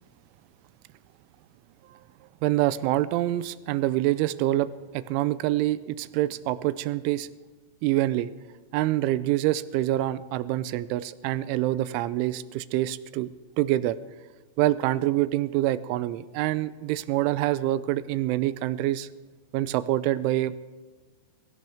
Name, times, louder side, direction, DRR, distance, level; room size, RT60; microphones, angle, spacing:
voice 1, 2.4-4.7 4.9-7.3 7.8-8.3 8.7-13.3 13.6-14.0 14.6-19.1 19.5-20.5, right 15 dB, 85° right, 15 dB, 3.0 m, -26 dB
23.0 x 16.5 x 3.5 m, 1.4 s
omnidirectional pair, 5.7 m